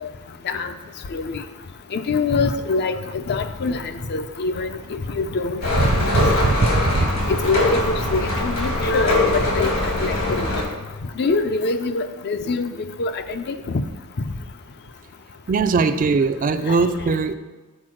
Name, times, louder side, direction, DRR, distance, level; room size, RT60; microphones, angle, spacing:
voice 1, 1.9-2.9 3.3-3.8 4.1-6.5 7.4-7.8 8.1-10.4 11.2-12.7 13.0-13.5, left 4 dB, 50° left, 9 dB, 0.5 m, -24 dB
sound 1, 5.6-10.6, left 1 dB, 75° left, 2.0 m, -22 dB
voice 2, 5.7-6.6 6.8-7.1 15.5-17.3, right 4 dB, 40° right, 10 dB, 0.4 m, -20 dB
6.0 x 4.4 x 6.3 m, 1.2 s
head